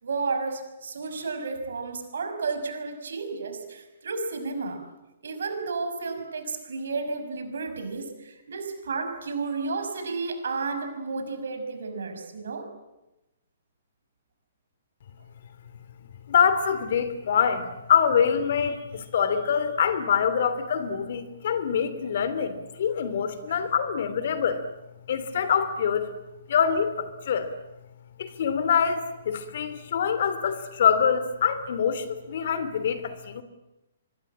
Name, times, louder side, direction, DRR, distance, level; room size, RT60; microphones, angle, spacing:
voice 1, 0.0-4.8 5.2-12.7 23.5-23.6, right 4 dB, 70° right, 7 dB, 5.8 m, -32 dB
voice 2, 16.3-24.6 25.1-26.1 26.5-27.5 28.2-33.4, left 7 dB, 60° left, 12 dB, 3.0 m, -25 dB
25.0 x 22.0 x 8.8 m, 0.98 s
figure-of-eight pair, 125°, 0 cm